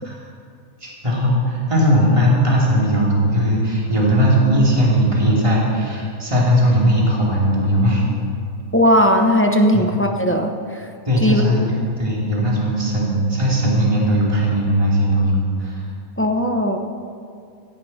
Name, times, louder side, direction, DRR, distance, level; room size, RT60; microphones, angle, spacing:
voice 1, 0.8-8.0 9.7-9.9 11.0-15.9, equal, 20° right, -4 dB, 3.0 m, -18 dB
voice 2, 8.7-10.9 11.2-11.4 16.2-16.8, equal, 10° left, 3 dB, 0.7 m, -17 dB
17.0 x 15.5 x 4.3 m, 2.3 s
omnidirectional pair, 1.6 m